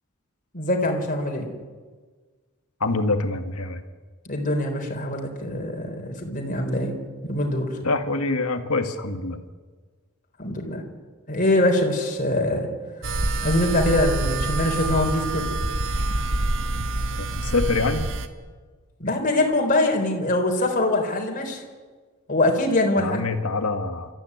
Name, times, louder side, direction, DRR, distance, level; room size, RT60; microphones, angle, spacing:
voice 1, 0.5-1.5 4.2-7.0 7.2-7.8 10.4-10.8 11.3-12.7 13.4-15.5 19.0-21.6 22.3-23.2, left 1 dB, 40° left, 1 dB, 4.1 m, -23 dB
voice 2, 2.8-3.8 7.8-9.4 17.2-18.1 23.0-24.1, left 3 dB, 80° left, 6 dB, 2.1 m, -25 dB
sound 1, 13.0-18.3, right 2 dB, 65° right, 1.5 m, -26 dB
28.5 x 14.0 x 9.7 m, 1.5 s
head